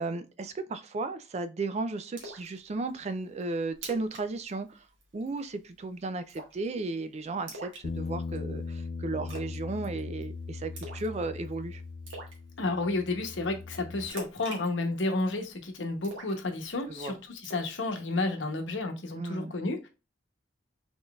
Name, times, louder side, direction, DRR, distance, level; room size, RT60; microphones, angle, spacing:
voice 1, 0.0-4.8 5.1-11.8 16.9-17.1 19.1-19.5, right 3 dB, 35° right, 0.4 m, -35 dB
Splash splatter, 2.2-2.5 2.9-3.0 3.4-3.5 3.7-4.2 4.5-4.7 5.0-5.4 6.3-6.7 7.5-8.4 9.3-9.6 9.8-10.2 10.8-11.1 11.4-11.5 12.1-12.4 14.1-15.4 16.0-17.0 17.4-17.7, right 1 dB, 85° right, 1.5 m, -43 dB
Bass guitar, 7.8-14.1, left 4 dB, 45° left, 0.4 m, -39 dB
voice 2, 12.6-19.9, left 2 dB, 80° left, 0.9 m, -31 dB
3.9 x 3.8 x 2.3 m
head